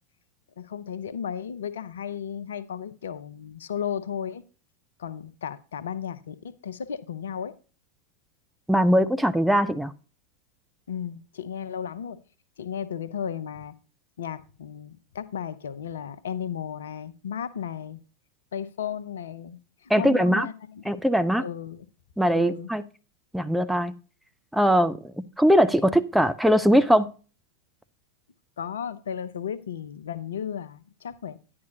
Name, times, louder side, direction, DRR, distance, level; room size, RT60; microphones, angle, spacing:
voice 1, 0.6-4.4 5.0-7.5 10.9-12.2 12.6-13.7 14.2-18.0 18.5-20.9 21.4-21.9 22.4-22.7 28.6-31.4, left 8 dB, 65° left, 0.6 m, -34 dB
voice 2, 8.7-9.9 19.9-20.5 20.9-21.4 22.2-22.8 23.3-23.9 24.5-27.1, equal, ahead, 0.5 m, -21 dB
10.5 x 9.6 x 2.8 m
figure-of-eight pair, 90°, 0 cm